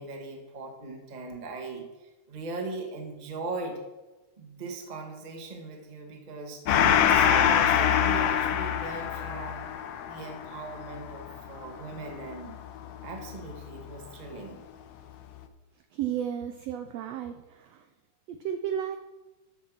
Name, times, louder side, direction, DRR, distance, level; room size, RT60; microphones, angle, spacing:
voice 1, 0.0-3.8 4.4-6.6 7.0-9.7 10.1-12.6 13.0-14.6, right 3 dB, 30° right, 2 dB, 0.8 m, -39 dB
Gong, 6.7-13.6, left 9 dB, 75° left, 1.4 m, -25 dB
voice 2, 15.9-17.8 18.3-19.0, right 9 dB, 80° right, 7 dB, 1.5 m, -33 dB
13.0 x 5.6 x 6.2 m, 1.1 s
omnidirectional pair, 3.6 m